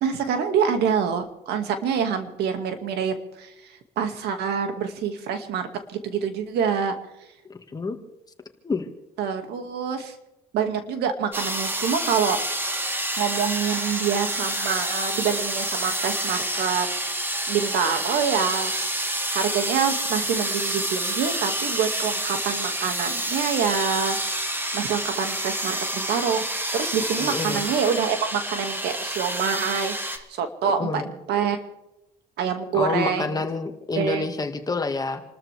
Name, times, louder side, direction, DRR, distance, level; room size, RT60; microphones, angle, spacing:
voice 1, 0.0-6.9 9.2-10.1 10.5-12.9 13.2-16.9 17.5-18.8 19.3-24.4 24.7-31.6 32.4-33.4 34.0-34.3, right 7 dB, 80° right, 7 dB, 2.1 m, -26 dB
voice 2, 7.5-8.0 8.6-8.9 27.2-27.6 30.6-31.1 32.7-35.2, left 3 dB, 20° left, 6 dB, 1.9 m, -28 dB
sound 1, 11.3-30.2, right 1 dB, 10° right, 1.8 m, -28 dB
28.5 x 13.5 x 3.5 m, 0.92 s
cardioid pair, 110°, 17 cm